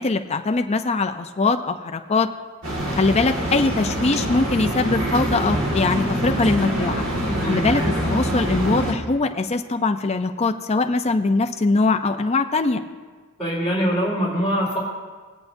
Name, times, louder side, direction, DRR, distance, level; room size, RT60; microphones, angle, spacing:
voice 1, 0.0-2.3 2.9-7.0 7.5-12.8, left 3 dB, 30° left, 6 dB, 0.5 m, -22 dB
sound 1, 2.6-8.9, equal, 65° right, 2.0 m, -24 dB
voice 2, 7.4-7.8 13.4-14.8, equal, 5° left, -13 dB, 3.3 m, -23 dB
21.0 x 8.0 x 2.7 m, 1.5 s
head